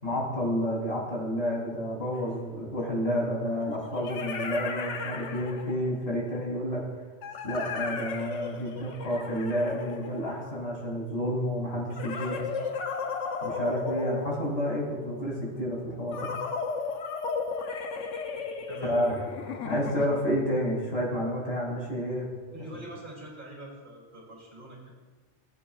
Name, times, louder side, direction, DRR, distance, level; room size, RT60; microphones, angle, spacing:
voice 1, 0.0-6.8 7.4-12.3 13.4-16.3 18.8-19.2 19.6-22.3, equal, 55° left, -4 dB, 3.5 m, -30 dB
sound 1, 2.1-2.2 3.6-6.0 7.2-10.7 11.9-14.9 16.1-20.4, left 5 dB, 80° left, 1.2 m, -35 dB
voice 2, 12.1-12.7 18.7-19.0 22.5-24.9, right 1 dB, 45° right, -3 dB, 3.1 m, -43 dB
18.5 x 8.3 x 2.4 m, 1.3 s
omnidirectional pair, 1.2 m